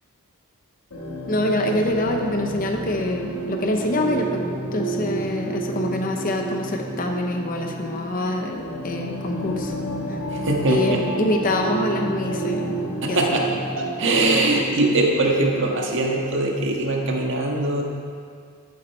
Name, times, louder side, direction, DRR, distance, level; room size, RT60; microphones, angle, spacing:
sound 1, 0.9-16.1, right 2 dB, 75° left, 2.0 m, -30 dB
voice 1, 1.3-4.4 4.7-9.7 10.1-10.2 10.6-12.6 13.1-13.2, left 1 dB, 40° left, 3 dB, 0.8 m, -25 dB
voice 2, 10.3-11.0 13.0-17.8, right 2 dB, 60° right, 0 dB, 1.6 m, -22 dB
13.0 x 8.5 x 4.4 m, 2.2 s
head